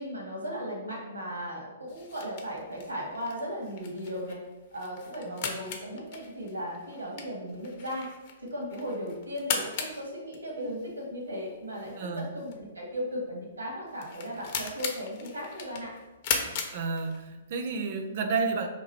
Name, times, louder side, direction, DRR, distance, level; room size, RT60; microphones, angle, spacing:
voice 1, 0.0-4.4 4.7-8.1 8.4-15.9, equal, 80° right, -2 dB, 1.1 m, -36 dB
sound 1, 1.9-17.5, left 5 dB, 40° left, 0.5 m, -38 dB
voice 2, 11.9-12.3 16.4-18.7, right 4 dB, 45° right, 6 dB, 0.4 m, -31 dB
2.9 x 2.5 x 4.1 m, 1.1 s
figure-of-eight pair, 115°, 0 cm